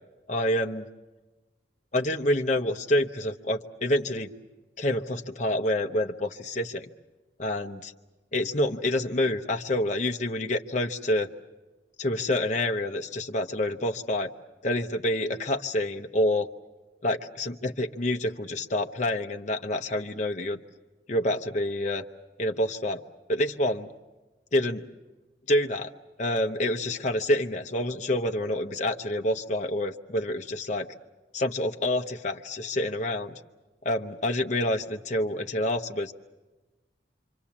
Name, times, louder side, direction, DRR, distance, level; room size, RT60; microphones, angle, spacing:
voice 1, 0.3-0.9 1.9-4.3 4.8-6.9 7.4-7.9 8.3-11.3 12.0-14.3 14.6-16.5 17.0-20.6 21.1-22.0 22.4-23.0 23.3-23.9 24.5-24.8 25.5-25.9 26.2-30.9 31.3-33.3 33.8-36.1, left 1 dB, 40° left, 4 dB, 0.9 m, -27 dB
26.5 x 25.0 x 7.2 m, 1.2 s
head